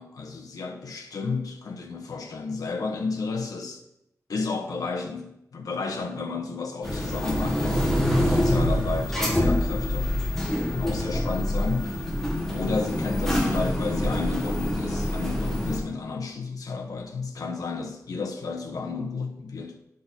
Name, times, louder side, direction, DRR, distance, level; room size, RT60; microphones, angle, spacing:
voice 1, 0.0-3.8 4.3-10.1 10.7-12.0 12.5-19.8, left 4 dB, 85° left, 3 dB, 0.9 m, -32 dB
sound 1, 6.8-15.8, left 1 dB, 5° left, 1.3 m, -25 dB
10.5 x 3.8 x 4.1 m, 0.80 s
wide cardioid pair, 125°, 6 cm